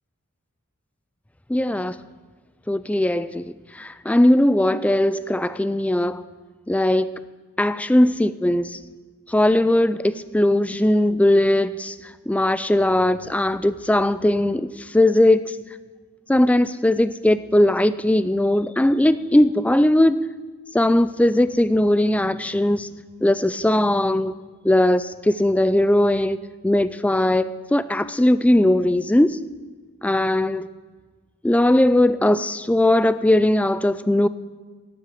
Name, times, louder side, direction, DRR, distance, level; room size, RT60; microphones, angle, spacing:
voice 1, 1.5-2.0 2.7-6.2 6.7-7.1 7.6-8.8 9.3-12.0 12.3-15.6 16.3-20.2 20.7-22.9 23.2-24.4 24.6-26.4 26.6-29.4 30.0-30.7 31.4-34.3, left 1 dB, 5° left, 14 dB, 0.3 m, -19 dB
12.0 x 8.0 x 8.3 m, 1.4 s
head